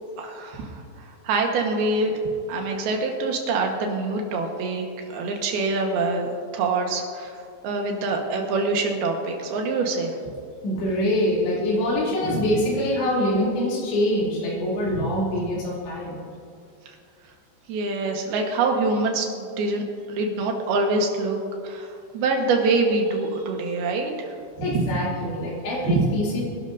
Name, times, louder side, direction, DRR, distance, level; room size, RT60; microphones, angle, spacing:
voice 1, 0.2-0.7 1.2-2.1 2.5-4.9 5.1-7.3 7.6-10.1 17.7-21.4 21.6-21.9 22.1-24.1 24.7-24.8 25.8-26.1, right 3 dB, 70° right, 2 dB, 3.1 m, -25 dB
voice 2, 10.6-16.2 24.6-26.4, left 1 dB, 75° left, -5 dB, 5.1 m, -24 dB
24.5 x 11.5 x 2.7 m, 2.3 s
omnidirectional pair, 5.0 m